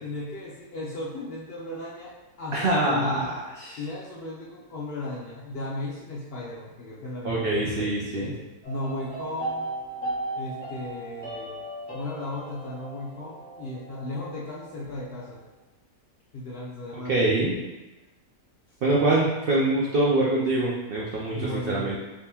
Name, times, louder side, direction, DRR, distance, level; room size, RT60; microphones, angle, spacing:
voice 1, 0.0-3.4 3.8-9.7 10.4-11.6 11.9-15.4 16.3-17.3 21.3-22.0, left 2 dB, 75° left, -5 dB, 0.5 m, -35 dB
voice 2, 2.5-3.2 3.6-3.8 7.2-8.3 16.9-17.6 18.8-22.0, right 2 dB, 90° right, -4 dB, 0.5 m, -24 dB
sound 1, 8.6-14.9 15.2-15.3, right 2 dB, 30° left, 1.2 m, -36 dB
3.5 x 2.9 x 2.8 m, 1.1 s
omnidirectional pair, 1.6 m